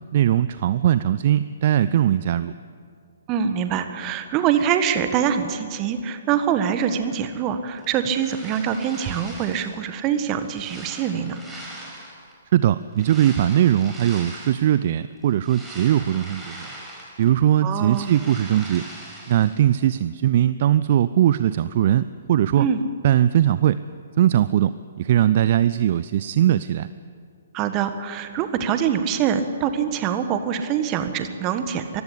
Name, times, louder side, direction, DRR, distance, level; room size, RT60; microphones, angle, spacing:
voice 1, 0.1-2.5 12.5-16.7 17.2-18.8 19.3-22.7 23.0-23.8 24.2-26.9, right 11 dB, 45° right, 15 dB, 0.5 m, -20 dB
voice 2, 3.3-11.4 17.6-18.1 22.6-22.8 27.5-32.0, right 8 dB, 25° right, 9 dB, 1.5 m, -24 dB
sound 1, 7.8-9.8 10.2-12.3 12.9-14.8 15.2-17.4 17.7-19.6, right 1 dB, 5° right, 5.2 m, -41 dB
23.5 x 15.0 x 8.4 m, 2.2 s
figure-of-eight pair, 125°, 0 cm